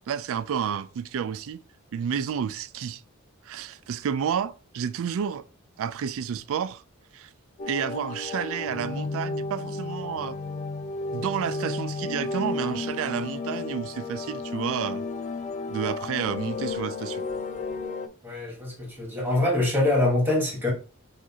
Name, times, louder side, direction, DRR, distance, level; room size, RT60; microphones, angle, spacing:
voice 1, 0.1-1.6 1.9-3.0 3.4-5.4 5.8-6.8 7.1-7.3 7.6-10.4 11.1-15.0 15.7-17.2, right 8 dB, 65° right, 0.3 m, -30 dB
sound 1, 7.6-18.1, left 3 dB, 35° left, 0.4 m, -33 dB
voice 2, 18.2-20.7, left 2 dB, 10° right, 1.4 m, -24 dB
6.0 x 2.5 x 2.8 m
head